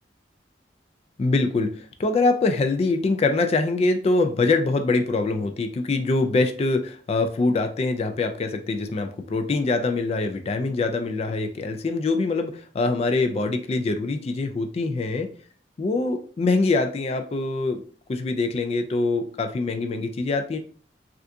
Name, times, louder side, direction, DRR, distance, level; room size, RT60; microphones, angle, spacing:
voice 1, 1.2-15.3 15.8-17.8 18.1-20.6, left 3 dB, 35° left, 7 dB, 0.3 m, -24 dB
3.4 x 2.4 x 2.6 m, 0.43 s
head